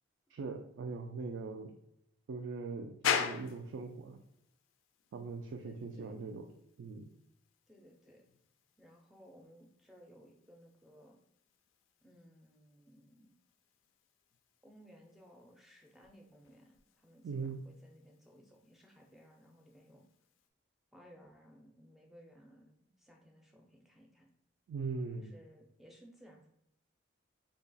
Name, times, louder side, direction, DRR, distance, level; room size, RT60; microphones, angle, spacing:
voice 1, 0.3-1.8 2.3-4.2 5.1-6.4 6.8-7.1 17.2-17.6 24.7-25.3, right 4 dB, 80° right, 3 dB, 0.3 m, -41 dB
sound 1, 3.0-20.5, left 7 dB, 90° left, 0.3 m, -44 dB
voice 2, 5.6-6.2 7.7-8.2 8.8-11.2 12.0-13.3 14.6-20.1 20.9-24.3 25.1-26.5, equal, ahead, 1 dB, 0.4 m, -60 dB
2.7 x 2.3 x 3.9 m, 0.77 s
head